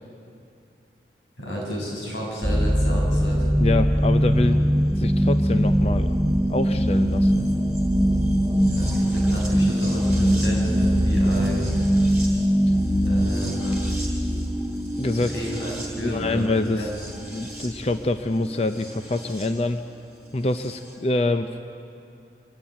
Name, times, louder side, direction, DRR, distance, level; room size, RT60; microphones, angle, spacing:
voice 1, 1.4-3.5 8.7-11.8 13.0-13.8 15.2-16.9, equal, 85° left, -3 dB, 6.6 m, -31 dB
sound 1, 2.4-19.5 20.6-20.7, equal, 5° right, 3.5 m, -22 dB
voice 2, 3.6-4.6 5.0-6.1 6.5-7.4 12.7-12.8 15.0-15.3 16.0-16.9 17.3-19.8 20.3-21.6, left 2 dB, 35° left, 8 dB, 0.5 m, -25 dB
24.5 x 14.5 x 9.1 m, 2.7 s
head